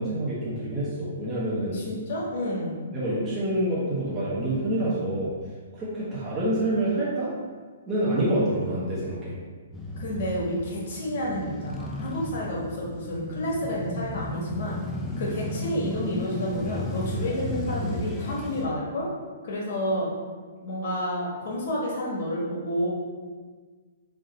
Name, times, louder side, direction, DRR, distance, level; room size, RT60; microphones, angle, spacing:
voice 1, 0.0-1.7 2.9-5.3 5.7-7.3 7.9-9.3, right 1 dB, 15° right, -9 dB, 0.8 m, -27 dB
voice 2, 1.7-2.8 10.0-14.8 15.2-19.1 19.4-20.1 20.6-22.9, left 1 dB, 60° left, -4 dB, 1.4 m, -30 dB
Male speech man speaking / Motorcycle / Idling, 9.7-18.7, left 1 dB, 10° left, 0.5 m, -34 dB
3.5 x 2.7 x 3.9 m, 1.5 s
hypercardioid pair, 150°, 0 cm